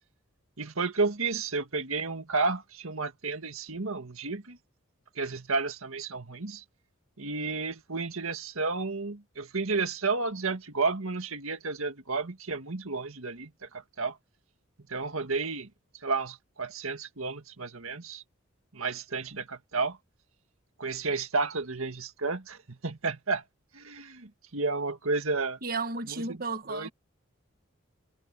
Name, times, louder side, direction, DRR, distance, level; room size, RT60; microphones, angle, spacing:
voice 1, 0.6-4.6 5.2-6.6 7.2-13.7 14.0-14.2 14.9-15.7 16.0-18.2 18.7-20.0 20.8-23.4 23.7-25.6 26.1-26.4 26.7-26.9, right 4 dB, 85° right, 1.8 m, -32 dB
voice 2, 25.6-26.9, right 3 dB, 45° right, 1.5 m, -33 dB
head